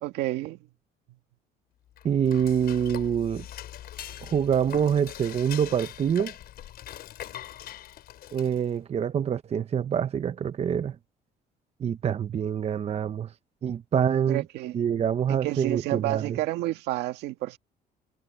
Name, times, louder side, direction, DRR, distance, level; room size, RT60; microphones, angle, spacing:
voice 1, 0.0-0.6 14.3-14.8 15.3-17.6, right 16 dB, 90° right, 2.0 m, -30 dB
Dishes pots and pans / Cutlery silverware, 1.9-8.8, left 12 dB, 65° left, 5.3 m, -42 dB
voice 2, 2.0-3.4 4.2-6.3 8.3-11.0 11.8-13.3 13.6-14.4 14.7-16.4, right 8 dB, 40° right, 0.8 m, -26 dB
cardioid pair, 110°, 17 cm